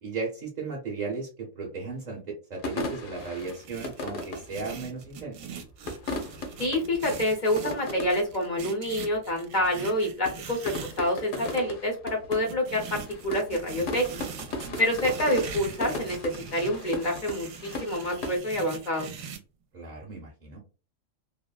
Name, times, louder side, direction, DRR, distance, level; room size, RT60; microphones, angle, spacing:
voice 1, 0.0-5.4 14.5-14.8 19.7-20.6, right 4 dB, 40° right, -3 dB, 0.8 m, -36 dB
sound 1, 2.6-5.1 5.7-8.3 8.6-8.7 8.9-9.3 9.6-9.9 10.2-18.4, left 2 dB, 70° left, 1.1 m, -37 dB
sound 2, 3.2-11.6 12.3-19.4, right 6 dB, 75° right, 0.9 m, -42 dB
voice 2, 6.6-14.1 14.8-16.2 16.5-19.1, left 1 dB, 50° left, 1 dB, 0.6 m, -27 dB
3.4 x 2.0 x 2.3 m, 0.34 s
omnidirectional pair, 1.5 m